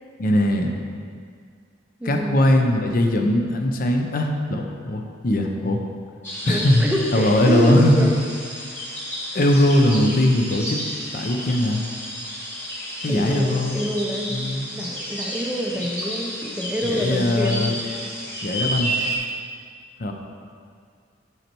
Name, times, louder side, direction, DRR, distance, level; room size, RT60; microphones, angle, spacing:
voice 1, 0.2-0.7 2.0-5.8 6.4-6.9 7.1-8.1 9.3-10.8 11.1-11.8 13.0-13.8 14.3-14.7 16.8-17.8 18.4-18.9 20.0-20.1, left 1 dB, 50° left, 3 dB, 0.6 m, -20 dB
voice 2, 2.0-2.4 6.5-8.2 13.1-14.5 14.7-17.7, equal, 5° right, 0 dB, 0.5 m, -26 dB
sound 1, 6.2-19.2, equal, 10° left, 1.2 m, -31 dB
8.1 x 4.3 x 4.5 m, 2.1 s
head